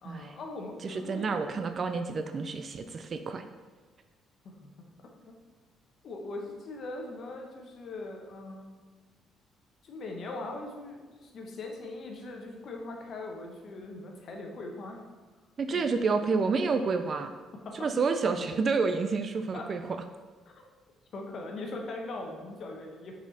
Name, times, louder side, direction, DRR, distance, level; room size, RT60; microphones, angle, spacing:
voice 1, 0.0-1.4 4.4-5.4 6.0-8.7 9.8-15.0 15.7-15.8 17.6-17.9 19.5-19.7 20.5-20.6 21.1-23.1, left 2 dB, 45° left, 2 dB, 1.0 m, -41 dB
voice 2, 0.8-3.4 15.6-17.3 17.8-19.8, right 4 dB, 35° right, 8 dB, 0.4 m, -29 dB
6.0 x 4.2 x 4.1 m, 1.4 s
cardioid pair, 145°, 0 cm